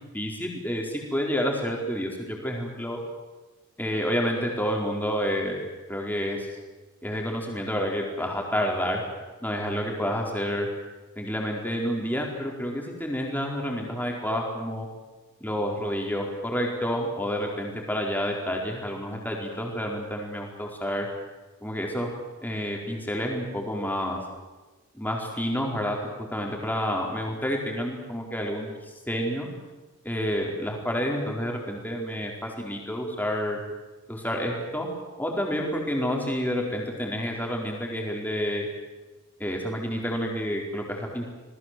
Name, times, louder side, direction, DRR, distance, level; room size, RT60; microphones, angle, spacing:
voice 1, 0.1-3.0 3.8-6.5 7.0-9.0 9.4-10.7 11.2-14.9 15.4-21.1 21.6-22.1 22.4-24.2 24.9-28.7 29.1-29.5 30.0-33.6 34.1-34.9 35.2-38.7 39.4-41.3, equal, 10° left, 0 dB, 4.6 m, -29 dB
27.5 x 20.5 x 7.8 m, 1.2 s
head